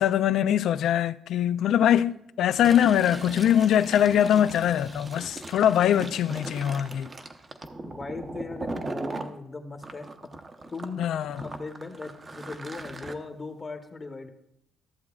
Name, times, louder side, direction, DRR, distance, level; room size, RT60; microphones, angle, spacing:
voice 1, 0.0-7.1 11.0-11.4, left 10 dB, 75° left, 0.3 m, -22 dB
Fill (with liquid), 2.5-9.3 9.8-13.1, right 2 dB, 30° right, 0.7 m, -39 dB
voice 2, 7.9-10.1 10.7-11.1 11.4-14.3, left 3 dB, 30° left, 1.0 m, -38 dB
14.0 x 7.3 x 2.4 m
cardioid pair, 90°, 0 cm